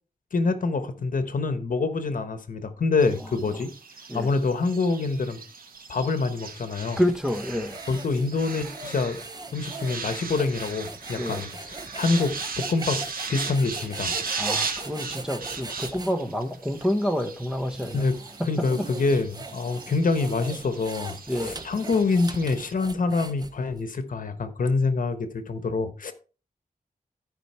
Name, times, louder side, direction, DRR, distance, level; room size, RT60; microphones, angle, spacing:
voice 1, 0.3-3.7 4.1-5.4 5.9-7.0 7.9-9.2 9.5-13.0 13.3-14.2 17.9-18.2 18.4-26.1, left 3 dB, 65° left, 1.2 m, -26 dB
sound 1, 3.0-22.7, right 5 dB, 80° right, 1.5 m, -37 dB
voice 2, 7.0-7.8 11.2-11.4 14.3-18.0 21.3-21.6, equal, 5° right, 1.3 m, -28 dB
sound 2, 7.0-16.2 16.8-16.9 17.5-23.8, right 3 dB, 25° right, 0.8 m, -41 dB
13.0 x 5.3 x 4.4 m
wide cardioid pair, 135°, 15 cm